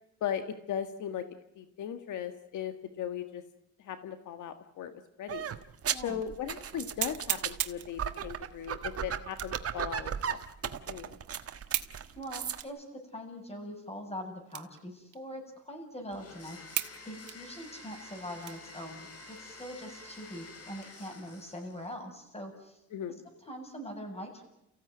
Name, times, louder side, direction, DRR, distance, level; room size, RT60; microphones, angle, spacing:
voice 1, 0.2-1.2 1.6-3.4 3.8-4.9 5.2-5.5 6.0-11.2 22.9-23.2, left 9 dB, 80° left, 8 dB, 1.7 m, -38 dB
sound 1, 5.3-12.6, right 8 dB, 50° right, 1.6 m, -36 dB
sound 2, 5.6-5.7 6.2-6.3 7.0-7.9 9.3-9.7 10.2-10.3 11.7-12.0 12.6-12.7 13.4-13.5 14.5-14.8 15.1-15.2 15.9-16.0 16.8-17.0 17.3-18.8 19.3-19.4 19.9-20.3, right 14 dB, 85° right, 1.5 m, -35 dB
voice 2, 5.9-6.2 12.2-12.8 13.1-22.8 23.2-24.4, equal, 20° left, 4 dB, 7.7 m, -43 dB
Domestic sounds home sounds, 16.1-22.0, left 3 dB, 50° left, 6.1 m, -50 dB
29.5 x 16.0 x 9.4 m, 0.85 s
cardioid pair, 90°, 30 cm